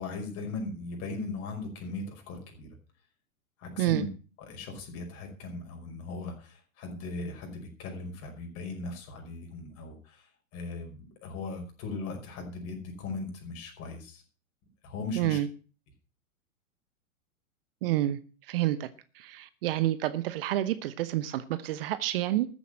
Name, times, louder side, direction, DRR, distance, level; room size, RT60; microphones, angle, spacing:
voice 1, 0.0-2.7 3.6-4.1 4.4-14.2 14.8-15.4, left 3 dB, 35° left, 3 dB, 5.4 m, -38 dB
voice 2, 3.8-4.1 15.2-15.5 17.8-18.2 18.5-18.9 19.1-22.5, right 14 dB, 40° right, 14 dB, 0.9 m, -28 dB
14.0 x 8.2 x 7.6 m, 0.38 s
figure-of-eight pair, 105°, 42 cm